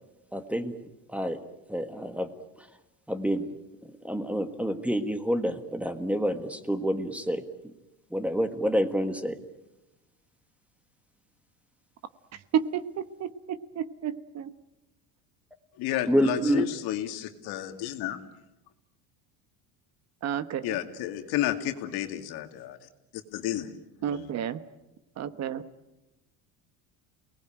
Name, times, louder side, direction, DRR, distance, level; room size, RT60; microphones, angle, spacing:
voice 1, 0.3-0.7 1.1-1.4 1.7-2.3 2.6-2.7 3.1-3.5 3.8-7.7 8.1-9.4 16.1-16.6, equal, 5° right, 9 dB, 1.5 m, -28 dB
voice 2, 12.3-12.8 13.2-14.5 16.4-16.5 20.2-20.8 24.0-24.6 25.2-25.6, right 9 dB, 40° right, 13 dB, 1.2 m, -31 dB
voice 3, 15.8-18.2 20.6-22.9 23.3-23.7 24.1-24.3, left 13 dB, 65° left, 7 dB, 2.5 m, -32 dB
29.0 x 19.5 x 9.1 m, 0.97 s
cardioid pair, 145°, 40 cm